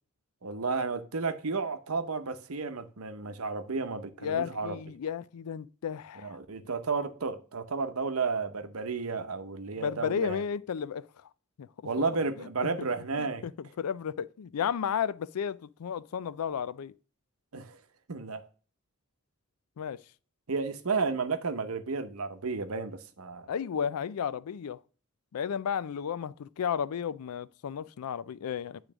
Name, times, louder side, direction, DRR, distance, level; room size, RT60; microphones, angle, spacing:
voice 1, 0.4-4.8 6.1-10.4 11.8-13.4 17.5-17.8 18.1-18.5 20.5-23.5, right 4 dB, 75° right, 0.8 m, -32 dB
voice 2, 4.2-6.4 9.8-11.0 11.6-11.7 13.2-13.5 13.8-16.9 19.8-20.0 23.5-24.8 25.3-28.8, left 7 dB, 85° left, 0.4 m, -33 dB
8.8 x 3.2 x 6.0 m
head